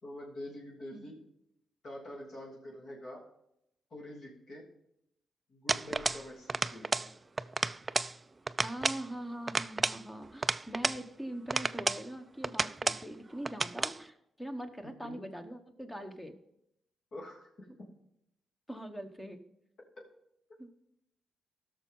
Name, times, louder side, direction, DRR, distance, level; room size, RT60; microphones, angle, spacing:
voice 1, 0.0-1.2 1.8-3.3 3.9-4.7 5.5-7.1 15.0-15.2 17.1-17.9, left 1 dB, 50° left, -3 dB, 3.0 m, -46 dB
sound 1, 5.7-6.2 6.5-7.1 7.4-8.1 8.5-9.0 9.5-11.0 11.5-12.0 12.4-13.0 13.4-14.0, right 3 dB, 20° right, 0.3 m, -31 dB
voice 2, 8.6-16.4 18.7-19.4 20.6-20.7, right 1 dB, 5° left, 7 dB, 1.1 m, -42 dB
16.5 x 6.6 x 3.8 m, 0.78 s
cardioid pair, 130°, 0 cm